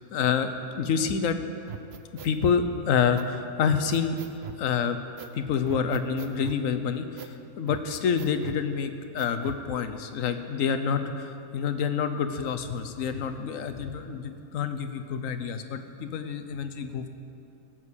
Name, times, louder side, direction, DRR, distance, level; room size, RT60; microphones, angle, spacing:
voice 1, 0.1-1.4 2.2-4.2 4.6-5.0 5.3-17.1, left 6 dB, 65° left, 8 dB, 1.1 m, -28 dB
sound 1, 1.7-2.6 3.2-3.3 3.7-4.6 5.2-5.4 5.7-6.6 7.2-7.3 7.7-8.6 9.2-9.6, right 7 dB, 55° right, 0.8 m, -41 dB
16.5 x 7.6 x 6.3 m, 2.6 s
omnidirectional pair, 1.6 m